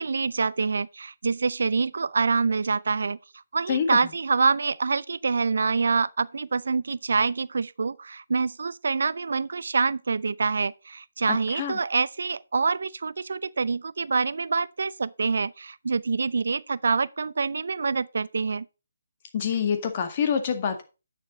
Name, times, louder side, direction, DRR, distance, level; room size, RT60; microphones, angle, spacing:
voice 1, 0.0-3.2 3.5-18.7, right 4 dB, 70° right, 0.4 m, -26 dB
voice 2, 3.7-4.0 11.3-11.8 19.3-20.8, left 7 dB, 35° left, 1.8 m, -26 dB
9.7 x 6.8 x 4.1 m
figure-of-eight pair, 155°, 0 cm